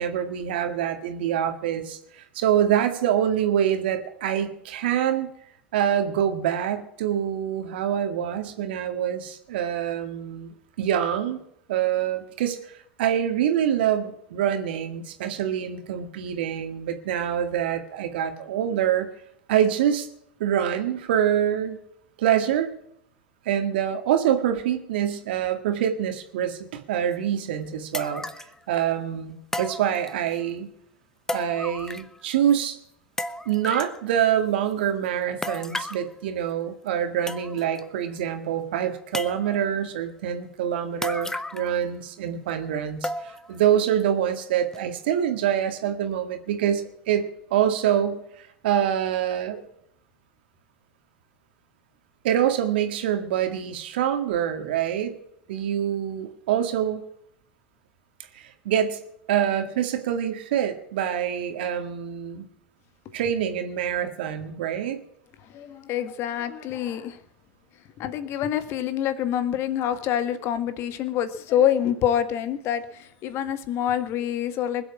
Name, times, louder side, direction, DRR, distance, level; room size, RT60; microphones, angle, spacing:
voice 1, 0.0-5.3 5.7-11.4 11.7-12.6 13.0-19.1 19.5-20.1 20.4-21.8 22.2-22.7 23.5-28.2 28.7-30.7 31.3-32.8 33.5-49.6 52.2-55.2 55.5-57.0 58.3-59.0 59.3-62.4 63.1-65.0, right 10 dB, 70° right, 7 dB, 2.0 m, -25 dB
sound 1, 27.1-27.2 27.9-28.5 29.5-30.4 31.3-32.2 32.5-32.6 33.2-34.0 35.4-36.1 36.9-37.0 37.3-37.8 38.2-38.3 39.1-39.7 41.0-41.8 42.1-42.2 43.0-43.6 44.0-44.1 44.7-44.8, left 1 dB, 10° left, 1.0 m, -33 dB
voice 2, 65.4-67.2 68.0-74.9, left 10 dB, 50° left, 12 dB, 1.6 m, -26 dB
20.5 x 7.8 x 7.2 m, 0.75 s
hypercardioid pair, 90°, 6 cm